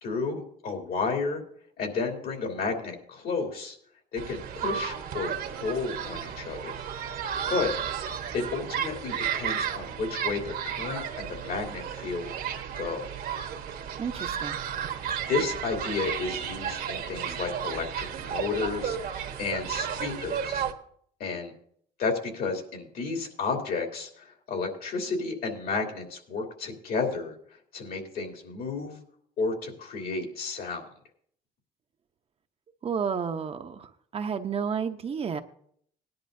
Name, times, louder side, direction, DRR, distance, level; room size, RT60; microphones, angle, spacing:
voice 1, 0.0-1.4 1.8-3.8 4.1-6.8 7.5-7.7 8.3-12.3 12.8-13.1 15.0-19.0 19.4-20.6 21.2-21.5 22.0-27.3 27.7-29.0 29.4-30.8, left 4 dB, 65° left, 2 dB, 3.0 m, -32 dB
sound 1, 4.2-20.7, right 8 dB, 60° right, 1.3 m, -33 dB
voice 2, 14.0-14.6 32.8-33.9 34.1-35.4, right 6 dB, 35° right, 6 dB, 0.8 m, -31 dB
18.5 x 10.5 x 2.7 m, 0.63 s
cardioid pair, 110°, 17 cm